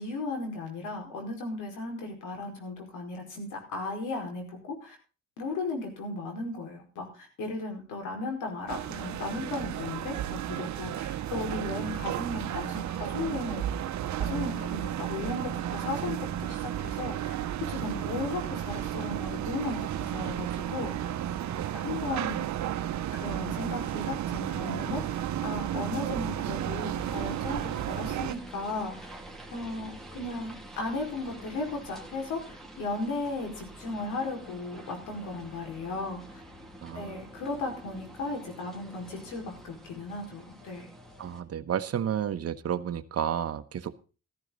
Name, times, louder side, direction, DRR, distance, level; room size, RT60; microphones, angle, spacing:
voice 1, 0.0-5.0 5.4-13.6 14.2-17.3 17.7-21.1 21.7-22.4 23.1-29.1 29.5-36.4 36.9-40.9, left 2 dB, 90° left, 2 dB, 5.0 m, -36 dB
sound 1, 8.7-28.3, right 11 dB, 70° right, 1.0 m, -33 dB
sound 2, 27.0-41.4, right 1 dB, ahead, 2.4 m, -47 dB
voice 2, 36.8-37.3 41.2-44.0, right 9 dB, 55° right, 12 dB, 1.1 m, -32 dB
14.0 x 13.5 x 4.0 m, 0.35 s
cardioid pair, 90°, 30 cm